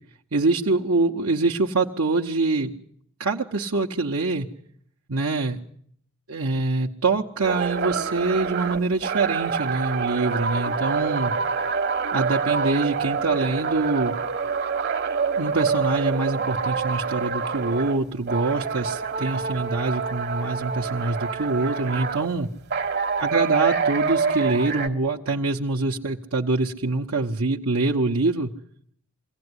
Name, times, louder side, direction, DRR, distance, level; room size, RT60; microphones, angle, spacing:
voice 1, 0.3-2.7 3.2-4.5 5.1-5.6 6.3-11.3 12.1-14.2 15.4-22.5 23.2-28.5, right 3 dB, 70° right, 0 dB, 1.1 m, -25 dB
sound 1, 7.4-18.0 18.3-22.3 22.7-24.9, right 5 dB, 50° right, 1.3 m, -26 dB
23.0 x 16.5 x 9.8 m, 0.65 s
head